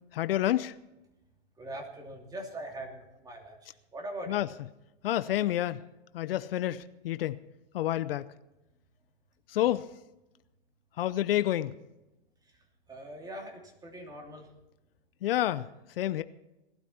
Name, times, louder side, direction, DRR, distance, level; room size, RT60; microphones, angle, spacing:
voice 1, 0.1-0.7 4.3-4.5 5.0-5.8 6.1-7.4 7.7-8.3 9.5-9.9 11.0-11.7 15.2-15.7 16.0-16.2, left 13 dB, 70° left, 14 dB, 0.7 m, -29 dB
voice 2, 1.6-4.4 9.7-9.8 12.9-14.5, right 1 dB, 10° right, 2 dB, 2.9 m, -42 dB
18.5 x 12.5 x 4.3 m, 0.95 s
hypercardioid pair, 130°, 30 cm